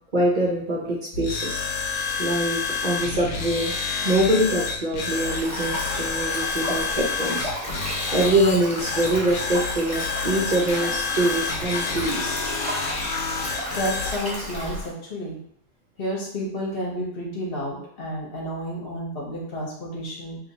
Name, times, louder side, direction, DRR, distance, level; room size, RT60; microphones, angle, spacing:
voice 1, 0.1-1.6 2.2-3.7 4.0-7.5 8.1-12.7, right 1 dB, 50° right, -3 dB, 0.5 m, -24 dB
sound 1, 1.1-14.2, left 5 dB, 70° left, 1.0 m, -29 dB
Stream, 5.1-14.9, equal, 10° right, 1.0 m, -33 dB
voice 2, 13.7-15.4 16.0-20.4, equal, 45° left, -3 dB, 1.0 m, -31 dB
2.8 x 2.6 x 4.0 m, 0.67 s
omnidirectional pair, 1.6 m